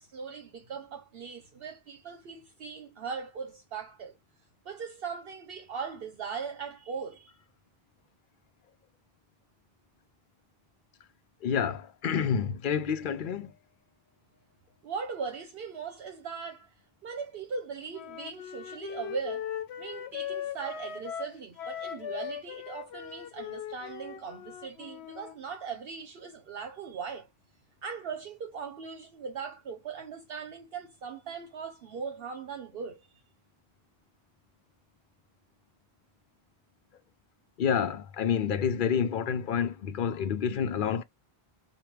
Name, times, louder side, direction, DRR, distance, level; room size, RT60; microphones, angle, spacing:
voice 1, 0.0-4.2 4.6-7.3 14.8-16.7 17.0-19.5 19.8-27.3 27.8-33.0, right 5 dB, 65° right, 0.9 m, -39 dB
voice 2, 11.4-13.5 37.6-41.0, left 7 dB, 60° left, 0.7 m, -28 dB
Wind instrument woodwind instrument, 17.9-25.3, left 9 dB, 90° left, 0.9 m, -39 dB
4.9 x 2.3 x 3.0 m
omnidirectional pair, 1.1 m